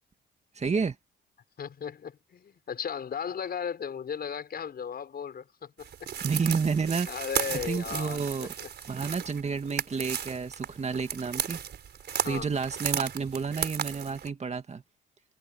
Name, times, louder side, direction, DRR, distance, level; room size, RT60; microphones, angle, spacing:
voice 1, 0.5-1.0 6.2-7.1 7.5-8.5 8.9-11.6 12.2-14.8, right 5 dB, 35° right, 2.2 m, -30 dB
voice 2, 1.6-5.9 7.1-8.7 12.2-12.5, left 7 dB, 50° left, 5.5 m, -36 dB
sound 1, 5.8-14.3, right 8 dB, 60° right, 4.5 m, -35 dB
cardioid pair, 90°, 20 cm